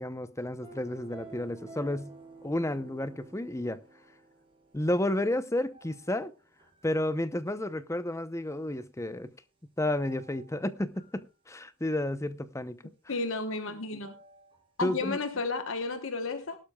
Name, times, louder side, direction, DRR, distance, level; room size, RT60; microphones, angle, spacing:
voice 1, 0.0-2.1 2.4-3.8 4.7-6.3 6.8-9.3 9.8-12.8 14.8-15.2, left 1 dB, 15° left, 0.7 m, -31 dB
sound 1, 0.6-6.9 10.1-10.6 11.0-11.2 14.0-14.6 15.0-15.1, right 3 dB, 25° right, 5.3 m, -52 dB
voice 2, 13.1-14.1 14.8-16.6, left 3 dB, 60° left, 1.1 m, -32 dB
18.5 x 12.0 x 2.3 m
head